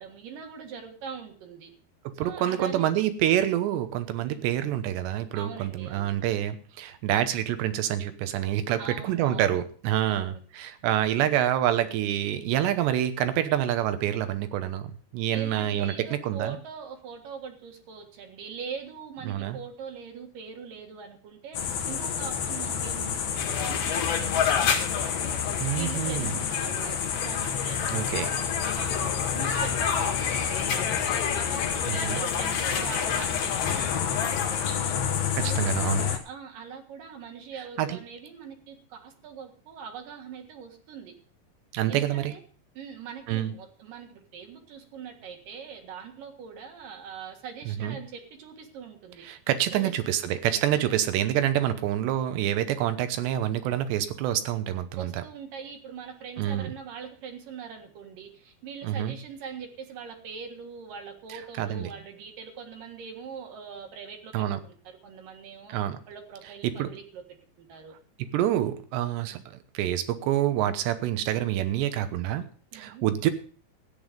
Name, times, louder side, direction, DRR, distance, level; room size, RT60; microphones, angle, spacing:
voice 1, 0.0-1.7 2.2-3.0 4.2-4.5 5.3-6.2 8.8-9.6 10.1-10.4 15.3-21.6 21.9-25.1 25.7-28.2 28.7-41.1 41.9-42.4 42.7-49.3 49.7-50.0 50.7-51.1 55.0-65.7 66.1-67.2 67.6-68.0 69.2-69.4 72.7-73.0, right 6 dB, 60° right, 5 dB, 2.9 m, -42 dB
voice 2, 2.2-16.6 19.2-19.6 25.6-26.4 27.9-28.3 31.9-32.2 35.4-36.1 37.8-38.0 41.7-42.3 43.3-43.5 47.7-48.0 49.2-55.2 56.4-56.7 58.8-59.1 61.3-61.9 64.3-64.6 65.7-66.0 66.6-66.9 68.3-72.4 72.7-73.3, right 12 dB, 80° right, 11 dB, 3.2 m, -27 dB
sound 1, 21.5-36.2, left 7 dB, 75° left, 1.5 m, -29 dB
sound 2, 23.4-34.7, left 7 dB, 55° left, 3.2 m, -31 dB
13.5 x 9.5 x 5.2 m, 0.42 s
omnidirectional pair, 5.0 m